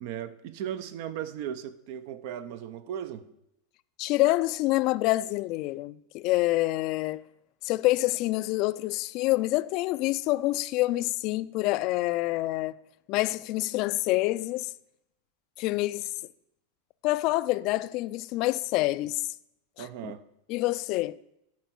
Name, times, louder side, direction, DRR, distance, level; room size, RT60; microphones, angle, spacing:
voice 1, 0.0-3.3 19.8-20.2, right 10 dB, 60° right, 0.7 m, -37 dB
voice 2, 4.0-7.2 7.6-12.7 13.1-14.7 15.6-16.1 17.0-19.2 19.8-20.1 20.5-21.2, left 18 dB, 50° left, 0.4 m, -27 dB
11.5 x 4.6 x 6.2 m
hypercardioid pair, 105°, 0 cm